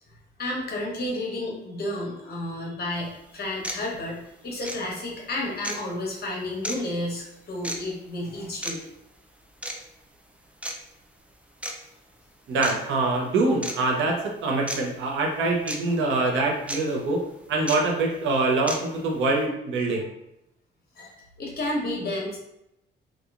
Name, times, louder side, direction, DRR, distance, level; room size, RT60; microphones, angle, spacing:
voice 1, 0.4-8.8 15.4-15.6 15.9-16.0 21.0-22.4, left 1 dB, 50° left, -2 dB, 1.0 m, -31 dB
sound 1, 2.9-3.0 3.6-3.8 4.6-4.8 5.6-5.8 6.6-6.8 7.6-7.8 8.6-8.7 9.6-9.8 10.6-10.7 11.6-11.7 12.6-12.8 13.6-13.7 14.7-14.8 15.7-15.8 16.7-16.8 17.7-17.8 18.7-18.8, right 1 dB, 5° right, 0.3 m, -31 dB
voice 2, 12.5-17.2 17.5-20.1, right 2 dB, 80° right, 0 dB, 0.6 m, -24 dB
2.9 x 2.3 x 2.4 m, 0.83 s
cardioid pair, 90°, 20 cm